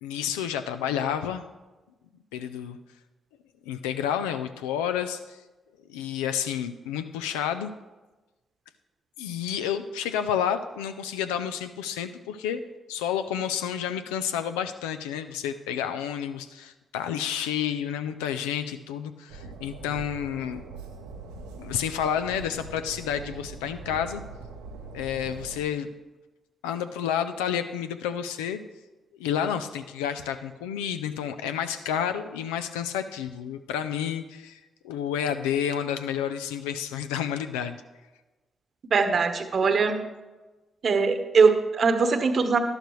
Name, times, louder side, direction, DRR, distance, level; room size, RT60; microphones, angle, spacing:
voice 1, 0.0-1.4 2.3-2.8 3.7-5.4 5.9-7.7 9.2-12.6 12.9-20.6 21.6-24.2 24.9-25.9 26.6-28.6 29.2-34.6 34.8-37.8, left 9 dB, 90° left, 9 dB, 0.5 m, -30 dB
Train, 19.3-25.6, right 4 dB, 90° right, 0.8 m, -42 dB
voice 2, 38.9-40.0 40.8-42.6, right 5 dB, 55° right, 8 dB, 1.0 m, -21 dB
11.5 x 11.5 x 3.2 m, 1.2 s
hypercardioid pair, 45°, 0 cm